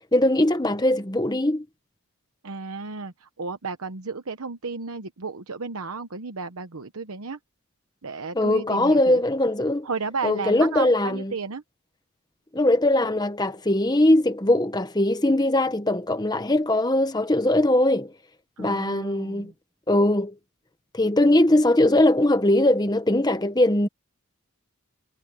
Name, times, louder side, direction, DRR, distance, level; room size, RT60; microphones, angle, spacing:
voice 1, 0.1-1.6 8.3-9.9 10.2-11.3 12.5-18.1 18.6-19.5 19.9-20.3 20.9-23.9, left 1 dB, 20° left, 1.1 m, -21 dB
voice 2, 2.4-7.4 8.0-9.2 9.8-11.6 18.6-19.5, right 4 dB, 75° right, 1.0 m, -33 dB
head